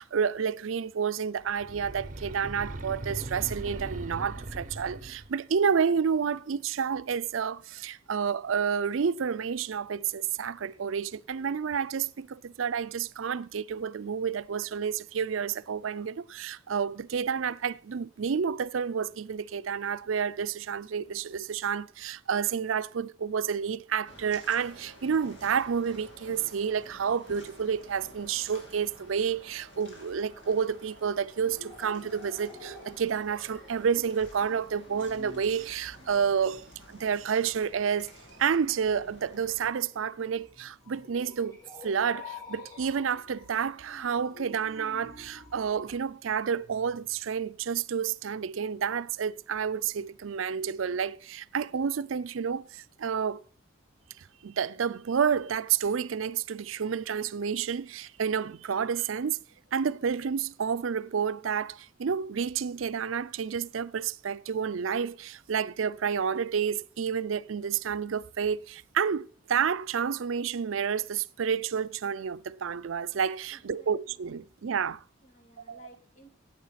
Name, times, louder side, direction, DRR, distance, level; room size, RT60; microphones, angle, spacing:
voice 1, 0.0-38.1 38.4-53.4 54.2-59.4 59.7-75.0 75.7-75.8, right 7 dB, 80° right, 0.5 m, -30 dB
sound 1, 1.5-5.4, right 2 dB, 40° right, 1.0 m, -39 dB
sound 2, 24.1-39.7, equal, 65° left, 3.6 m, -52 dB
sound 3, 31.4-46.0, left 3 dB, 15° left, 4.0 m, -50 dB
voice 2, 73.5-74.2 75.2-76.3, right 1 dB, 40° left, 2.8 m, -55 dB
12.5 x 8.9 x 5.8 m
head